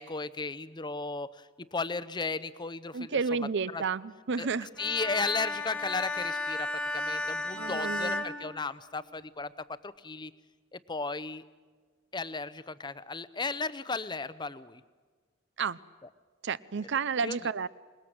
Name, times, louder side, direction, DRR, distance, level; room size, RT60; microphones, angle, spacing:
voice 1, 0.0-3.8 4.4-6.7 6.9-9.5 9.8-10.3 10.7-11.4 12.1-14.8 17.2-17.4, left 4 dB, 20° left, 15 dB, 0.7 m, -35 dB
voice 2, 2.9-4.7 7.6-8.2 15.6-15.8 16.4-17.7, right 5 dB, 60° right, 18 dB, 0.6 m, -31 dB
Bowed string instrument, 4.8-9.3, left 2 dB, 5° left, 1.7 m, -34 dB
26.0 x 20.5 x 7.9 m, 1.4 s
head